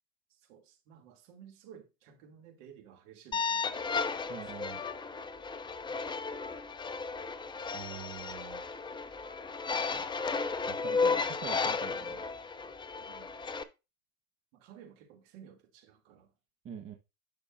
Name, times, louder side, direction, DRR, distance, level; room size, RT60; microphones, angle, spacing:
voice 1, 0.3-4.5 13.0-13.5 14.5-16.3, right 8 dB, 60° right, 2.9 m, -55 dB
sound 1, 3.3-13.6, left 4 dB, 10° left, 0.6 m, -34 dB
voice 2, 4.3-4.8 7.7-8.6 9.9-10.0 10.7-12.2 16.6-17.0, right 8 dB, 30° right, 1.4 m, -45 dB
11.0 x 6.0 x 2.7 m
hypercardioid pair, 115°, 43 cm